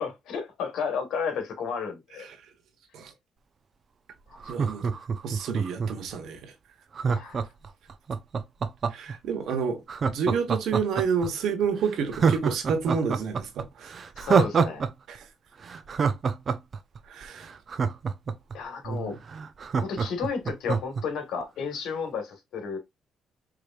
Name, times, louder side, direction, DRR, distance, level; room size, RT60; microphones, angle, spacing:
voice 1, 0.0-2.3 4.3-4.4 4.9-5.0 7.0-7.4 14.2-14.8 18.5-19.2 19.8-22.8, left 6 dB, 80° left, 1.6 m, -32 dB
Laughter, 4.4-6.1 7.0-9.2 9.9-11.3 11.7-11.8 12.1-14.9 15.2-15.3 15.6-18.6 19.0-19.1 19.3-21.0 21.4-21.5, right 5 dB, 45° right, 0.6 m, -26 dB
voice 2, 4.5-4.9 5.2-6.5 8.9-14.0 15.1-15.3 17.0-17.5 18.8-19.2, right 6 dB, 75° right, 1.3 m, -29 dB
4.9 x 3.0 x 2.4 m
cardioid pair, 90°, 0 cm